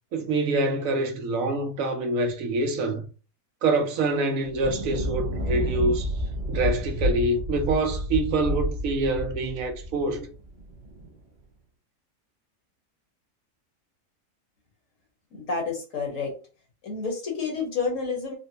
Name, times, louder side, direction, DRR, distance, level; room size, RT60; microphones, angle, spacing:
voice 1, 0.1-3.1 3.6-6.1 6.5-10.3, right 2 dB, 70° right, 1.0 m, -26 dB
Thunder, 4.4-11.1, equal, 45° right, 0.7 m, -30 dB
voice 2, 15.3-16.3 16.8-18.3, left 4 dB, 60° left, 1.5 m, -29 dB
4.1 x 2.1 x 2.7 m
omnidirectional pair, 1.6 m